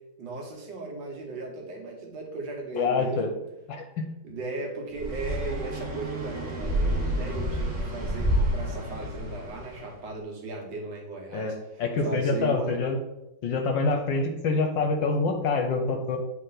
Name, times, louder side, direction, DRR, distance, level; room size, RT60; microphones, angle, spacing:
voice 1, 0.2-3.4 4.2-12.7, right 3 dB, 65° right, 0 dB, 1.7 m, -37 dB
voice 2, 2.7-3.3 3.7-4.1 11.3-11.5 11.8-13.0 13.4-16.2, left 3 dB, 70° left, 5 dB, 1.3 m, -26 dB
sound 1, 5.0-9.9, right 1 dB, 30° right, 1.3 m, -29 dB
8.4 x 3.3 x 3.9 m, 0.92 s
omnidirectional pair, 2.3 m